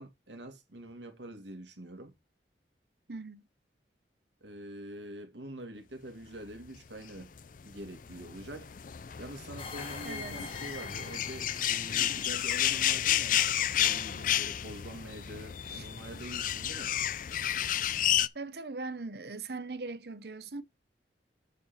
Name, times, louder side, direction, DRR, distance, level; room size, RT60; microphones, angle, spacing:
voice 1, 0.0-2.1 4.4-7.3 7.6-8.7 9.2-16.9, right 1 dB, 85° right, 2.3 m, -45 dB
voice 2, 3.1-3.4 10.0-10.4 15.7-15.9 18.3-20.6, right 3 dB, 65° right, 0.9 m, -40 dB
sound 1, 7.2-18.3, left 11 dB, 45° left, 0.4 m, -31 dB
sound 2, 9.6-14.7, left 5 dB, 30° left, 1.2 m, -47 dB
7.4 x 5.8 x 4.3 m
head